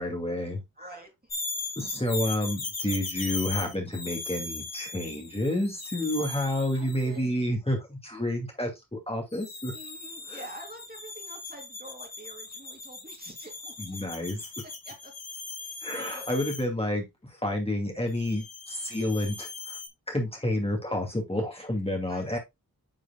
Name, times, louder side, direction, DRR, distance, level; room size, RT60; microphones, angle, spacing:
voice 1, 0.0-0.9 1.8-9.7 10.3-10.4 13.8-14.4 15.8-19.8 20.1-22.4, left 1 dB, 15° left, 2.3 m, -30 dB
voice 2, 0.8-1.3 6.1-6.3 6.7-7.3 9.7-14.0 14.6-15.1 15.6-16.3 22.1-22.4, right 1 dB, 25° right, 3.3 m, -47 dB
sound 1, 1.3-7.2 9.3-16.6 18.1-19.9, left 3 dB, 75° left, 2.3 m, -38 dB
9.6 x 5.0 x 2.3 m
wide cardioid pair, 80°, 36 cm